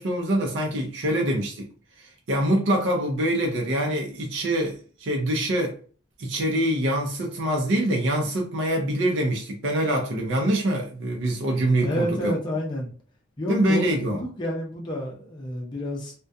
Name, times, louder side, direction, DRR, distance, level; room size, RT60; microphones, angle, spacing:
voice 1, 0.0-1.7 2.0-5.7 6.2-12.3 13.5-14.2, right 1 dB, 65° right, 0.5 m, -25 dB
voice 2, 11.8-12.9 13.4-16.1, equal, 25° left, 0.5 m, -29 dB
2.4 x 2.2 x 2.6 m
head